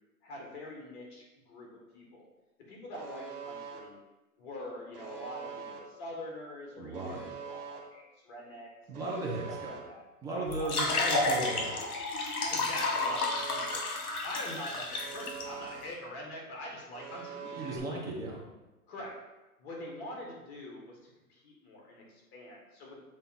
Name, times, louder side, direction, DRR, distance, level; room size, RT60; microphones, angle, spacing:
voice 1, 0.2-1.7 1.9-2.3 2.7-4.0 4.4-9.0 9.7-10.0 10.3-10.8 12.5-13.8 14.2-17.7 18.9-19.2 19.6-23.0, left 1 dB, 40° left, -2 dB, 1.9 m, -44 dB
Alarm, 2.9-3.8 4.9-5.8 6.9-7.8 8.9-9.8 10.9-11.8 12.9-13.8 14.9-15.8 16.9-17.8, right 7 dB, 75° right, 1.6 m, -43 dB
voice 2, 6.8-7.3 8.9-9.7 10.2-11.9 17.6-18.5, right 2 dB, 10° right, -4 dB, 0.9 m, -36 dB
sound 1, 10.5-15.4, left 3 dB, 65° left, 1.9 m, -31 dB
7.3 x 3.5 x 4.3 m, 1.1 s
hypercardioid pair, 145°, 46 cm